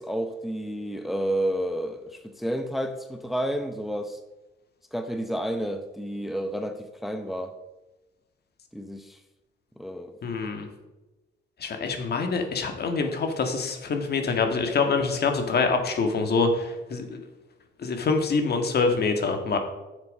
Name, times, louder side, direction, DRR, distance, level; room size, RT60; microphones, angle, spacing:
voice 1, 0.0-4.2 4.9-7.5 8.7-9.2 9.8-10.1, equal, ahead, 7 dB, 0.8 m, -30 dB
voice 2, 10.2-10.7 11.6-17.2 17.8-19.6, left 4 dB, 55° left, 5 dB, 1.8 m, -25 dB
9.7 x 7.3 x 5.4 m, 1.1 s
cardioid pair, 90°, 20 cm